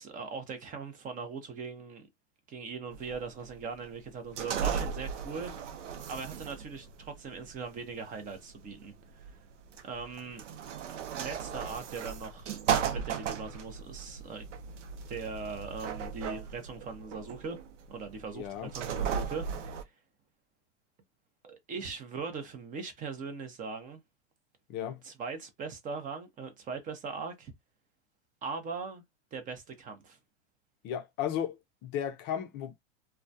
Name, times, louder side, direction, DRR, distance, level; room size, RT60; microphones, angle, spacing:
voice 1, 0.0-2.1 2.5-5.7 6.1-9.4 9.8-10.4 11.1-12.5 12.9-14.4 15.1-17.6 17.9-19.8 21.4-24.0 25.0-27.5 28.4-29.0 29.3-30.2, right 5 dB, 20° right, 0.6 m, -40 dB
sound 1, 2.9-19.8, right 7 dB, 80° right, 0.6 m, -36 dB
voice 2, 18.4-18.7 24.7-25.0 30.8-32.7, left 9 dB, 30° left, 0.5 m, -35 dB
2.2 x 2.2 x 2.6 m
hypercardioid pair, 120°, 36 cm